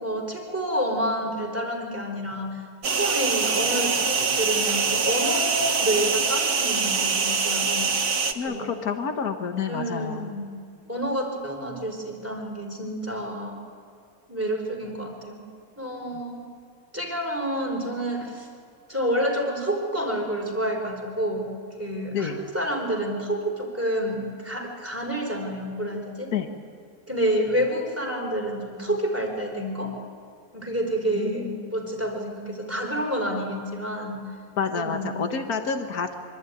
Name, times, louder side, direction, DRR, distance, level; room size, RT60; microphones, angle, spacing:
voice 1, 0.0-7.9 8.4-8.7 9.7-10.5 10.9-13.6 14.3-15.4 15.8-16.4 16.9-18.5 18.9-21.5 21.8-26.3 27.1-30.0 30.5-34.2 34.7-35.3, equal, 10° right, 1 dB, 4.1 m, -29 dB
sound 1, 2.8-8.3, right 5 dB, 90° right, 2.0 m, -24 dB
voice 2, 8.4-10.3 22.1-22.4 26.3-26.5 31.1-31.7 34.6-36.2, left 6 dB, 75° left, 5 dB, 2.0 m, -29 dB
26.0 x 24.0 x 9.2 m, 2.4 s
omnidirectional pair, 1.6 m